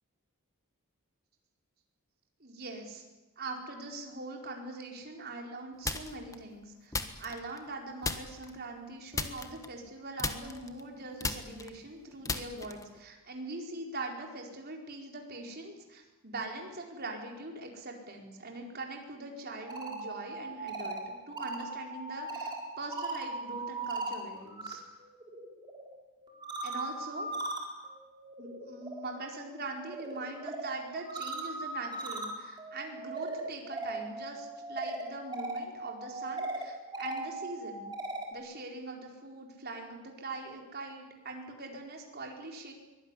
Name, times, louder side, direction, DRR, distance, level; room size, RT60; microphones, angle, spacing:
voice 1, 2.4-3.0 3.4-6.9 7.2-24.8 26.6-27.3 28.4-37.9 38.3-42.7, right 2 dB, 45° right, 1 dB, 4.6 m, -42 dB
sound 1, 5.8-6.3 6.9-7.7 8.0-8.5 9.1-9.9 10.2-13.0, left 3 dB, 15° left, 1.4 m, -36 dB
sound 2, 19.5-24.7 25.1-38.3, right 2 dB, 20° right, 4.1 m, -39 dB
23.5 x 20.0 x 10.0 m, 1.1 s
head